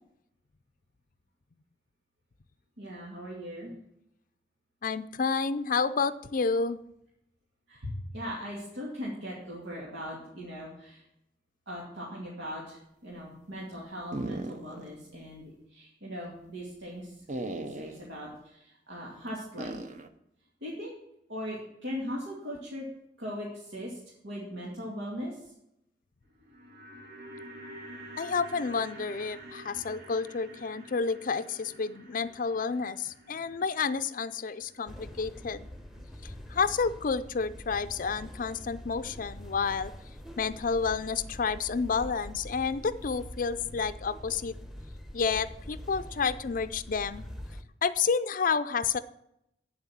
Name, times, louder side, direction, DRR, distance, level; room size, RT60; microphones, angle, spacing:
voice 1, 2.8-3.7 7.7-11.0 11.7-17.1 17.6-19.8 20.6-20.9 21.3-22.9 23.2-24.0 24.2-25.4, equal, 90° right, -4 dB, 2.4 m, -39 dB
voice 2, 4.8-6.8 28.2-35.7 36.2-39.9 40.4-44.5 45.1-47.2 47.8-49.0, left 5 dB, 50° left, 14 dB, 0.5 m, -30 dB
sound 1, 14.1-14.9 15.3-15.4 17.3-18.1 19.6-20.1, right 2 dB, 45° right, 0.8 m, -37 dB
sound 2, 26.2-36.5 36.8-36.9, right 1 dB, 60° right, 2.1 m, -49 dB
sound 3, 34.9-47.6, equal, ahead, 0.9 m, -44 dB
8.7 x 7.7 x 7.3 m, 0.80 s
head